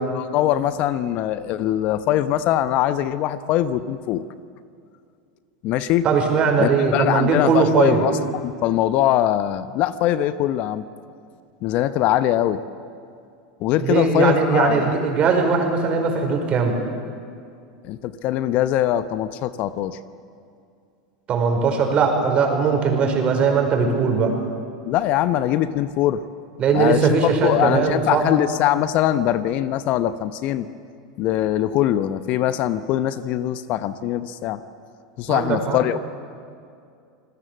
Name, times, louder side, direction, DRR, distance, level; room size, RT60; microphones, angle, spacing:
voice 1, 0.1-4.2 5.6-6.0 6.6-10.8 11.6-12.6 13.6-15.0 17.8-20.0 24.9-26.2 26.7-30.7 31.2-34.6 35.2-36.1, left 12 dB, 50° left, 14 dB, 0.9 m, -22 dB
voice 2, 6.0-8.0 13.8-16.8 21.3-24.3 26.6-28.2 35.3-35.8, right 5 dB, 40° right, 4 dB, 5.2 m, -19 dB
28.5 x 20.0 x 7.7 m, 2.4 s
hypercardioid pair, 85°, 3 cm